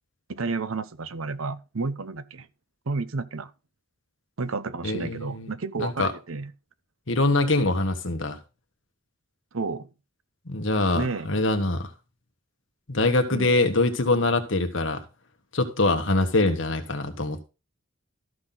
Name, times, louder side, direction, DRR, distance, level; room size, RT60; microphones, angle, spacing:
voice 1, 0.3-2.5 2.9-3.5 4.4-6.5 9.5-9.9 10.9-11.4 13.3-13.6, right 4 dB, 75° right, 0.8 m, -31 dB
voice 2, 4.8-6.1 7.1-8.4 10.5-11.9 12.9-15.0 15.5-17.4, left 2 dB, 60° left, 1.5 m, -24 dB
13.5 x 6.0 x 3.9 m
head